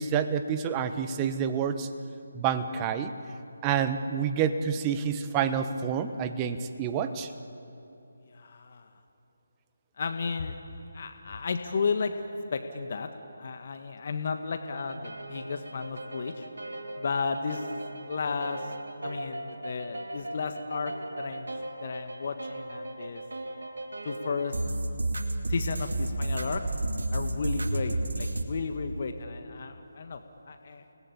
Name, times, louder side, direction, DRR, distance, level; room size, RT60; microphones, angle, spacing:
voice 1, 0.0-1.9 2.3-3.1 3.6-7.3, right 7 dB, 20° right, 9 dB, 1.2 m, -28 dB
voice 2, 8.3-8.9 10.0-10.6 10.9-12.1 12.5-13.1 13.4-16.4 17.0-17.7 18.1-18.7 19.0-21.5 21.8-23.2 24.0-24.5 25.5-26.6 27.1-30.2 30.5-30.8, left 5 dB, 45° left, 7 dB, 1.5 m, -33 dB
sound 1, 14.8-28.4, right 2 dB, 70° right, 2.5 m, -34 dB
29.5 x 19.5 x 8.6 m, 2.8 s
figure-of-eight pair, 150°, 0 cm